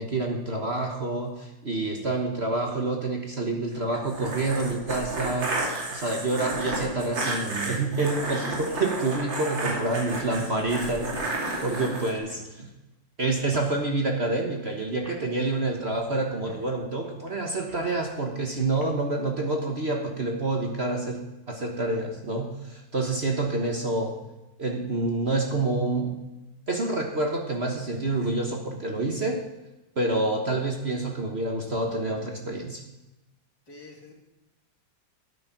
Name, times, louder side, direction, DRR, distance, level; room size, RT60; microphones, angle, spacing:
voice 1, 0.0-5.5 5.9-11.3 11.6-12.7 13.2-21.2 21.5-24.2 24.6-26.2 26.7-29.4 30.0-32.8, right 2 dB, 40° right, 1 dB, 1.4 m, -28 dB
sound 1, 3.9-12.1, right 2 dB, 85° right, 3.4 m, -31 dB
sound 2, 8.3-10.4 11.1-11.4 12.3-12.5 13.5-13.7 14.6-14.7 15.0-15.2 16.5-16.6 17.0-18.0 18.6-18.8, left 1 dB, 10° left, 2.3 m, -47 dB
voice 2, 9.9-10.9 33.7-34.1, left 2 dB, 55° left, -1 dB, 3.2 m, -46 dB
12.5 x 9.0 x 5.9 m, 1.0 s
omnidirectional pair, 2.0 m